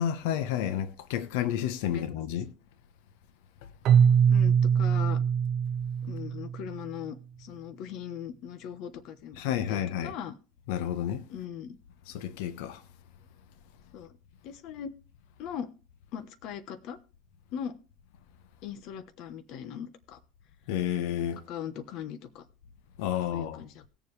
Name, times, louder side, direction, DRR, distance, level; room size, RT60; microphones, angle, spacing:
voice 1, 0.0-2.5 9.4-10.1 10.7-11.3 12.1-12.8 20.7-21.4 23.0-23.6, left 10 dB, 80° left, 1.0 m, -30 dB
Keyboard (musical), 3.8-6.8, right 7 dB, 40° right, 0.7 m, -23 dB
voice 2, 4.3-5.2 6.0-10.3 11.3-11.8 13.9-14.2 14.4-14.9 15.4-15.7 16.1-17.0 17.5-17.8 18.6-20.2 21.5-22.4 23.0-23.8, left 8 dB, 50° left, 1.0 m, -40 dB
18.5 x 7.1 x 3.3 m
cardioid pair, 170°, 0 cm